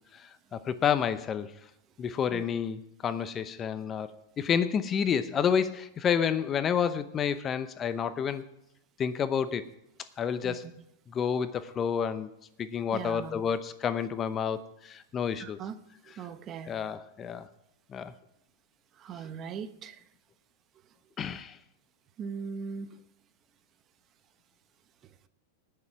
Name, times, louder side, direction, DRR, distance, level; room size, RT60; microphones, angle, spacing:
voice 1, 0.1-1.5 2.0-8.4 9.0-9.6 10.2-10.7 11.1-12.3 12.6-15.6 16.7-17.5 17.9-18.1 21.2-21.6, left 7 dB, 30° left, 13 dB, 0.8 m, -29 dB
voice 2, 12.9-13.4 15.4-15.8 16.1-16.7 18.9-20.0 22.2-23.0, right 6 dB, 35° right, 11 dB, 0.9 m, -39 dB
19.5 x 6.8 x 4.7 m, 0.82 s
hypercardioid pair, 110°, 0 cm